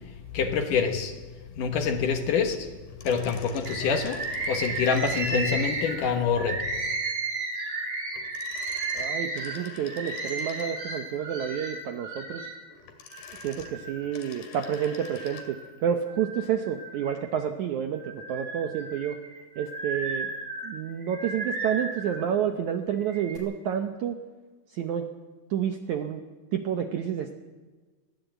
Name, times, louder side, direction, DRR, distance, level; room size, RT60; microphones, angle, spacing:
voice 1, 0.3-1.2 1.6-2.7 3.0-6.7, left 6 dB, 65° left, 6 dB, 2.5 m, -26 dB
sound 1, 2.8-5.7 8.1-11.0 12.7-15.5 15.8-15.9, left 6 dB, 90° left, 4.2 m, -47 dB
Bird, 3.7-12.6 13.1-14.1 14.6-15.6 16.1-17.4 17.9-22.2 22.9-23.4, right 3 dB, 45° right, 5.1 m, -34 dB
voice 2, 8.9-12.4 13.4-19.2 19.6-20.3 20.6-24.2 24.7-25.0 25.5-26.2 26.5-27.3, right 9 dB, 75° right, 6 dB, 1.8 m, -29 dB
21.5 x 15.5 x 8.2 m, 1.3 s
omnidirectional pair, 4.6 m